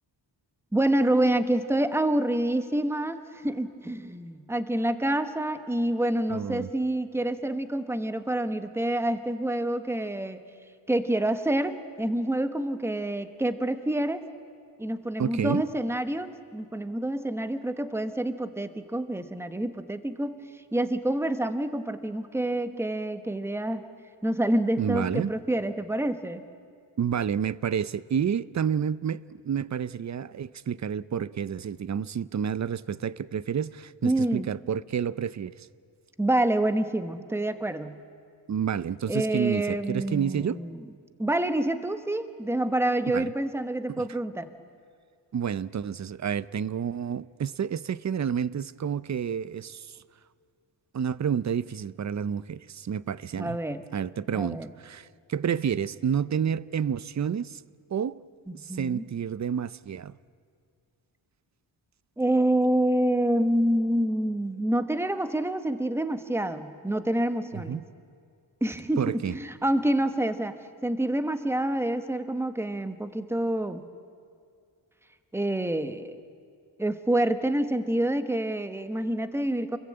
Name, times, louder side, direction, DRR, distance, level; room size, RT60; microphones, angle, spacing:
voice 1, 0.7-10.4 10.9-14.2 14.8-20.4 20.7-23.8 24.2-26.4 34.0-34.5 36.2-38.0 39.1-40.9 41.2-44.6 53.4-53.9 54.3-54.7 58.5-59.0 62.2-67.8 68.6-70.5 70.8-73.8 75.3-76.2 76.8-79.8, right 1 dB, 5° right, 1.1 m, -27 dB
voice 2, 6.3-6.7 15.2-15.6 24.8-25.3 27.0-35.7 38.5-40.6 43.1-43.3 44.0-44.1 45.3-50.0 50.9-53.6 53.9-57.6 57.9-58.2 58.6-60.1 67.5-67.8 69.0-69.4, right 8 dB, 40° right, 0.6 m, -29 dB
28.5 x 22.0 x 8.8 m
wide cardioid pair, 170°, 44 cm